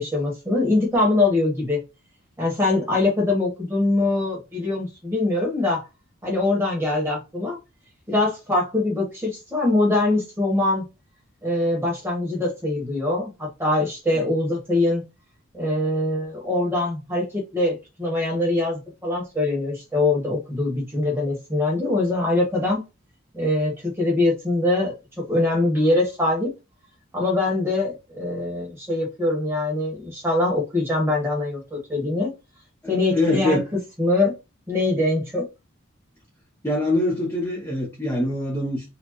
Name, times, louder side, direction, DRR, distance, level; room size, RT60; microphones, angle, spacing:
voice 1, 0.0-1.8 2.4-5.8 6.2-7.6 8.1-10.8 11.4-15.0 15.5-22.8 23.3-26.5 27.1-32.3 32.9-33.6 34.0-34.3 34.7-35.5, left 2 dB, 10° right, 1.4 m, -23 dB
voice 2, 32.8-33.6 36.6-38.9, left 1 dB, 10° left, 0.9 m, -24 dB
4.3 x 2.3 x 3.1 m
head